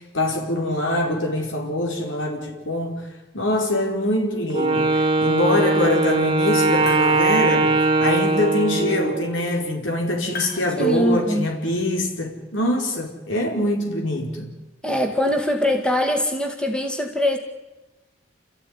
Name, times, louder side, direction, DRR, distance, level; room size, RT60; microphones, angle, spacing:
voice 1, 0.0-3.0 3.3-14.5, left 1 dB, 80° left, 4.9 m, -24 dB
Wind instrument woodwind instrument, 4.5-9.4, right 3 dB, 25° right, 2.0 m, -20 dB
sound 1, 6.6-7.6 10.3-11.5, left 4 dB, 50° left, 5.4 m, -38 dB
voice 2, 10.6-11.5 14.8-17.4, left 1 dB, 5° left, 2.1 m, -22 dB
29.0 x 14.5 x 9.9 m
head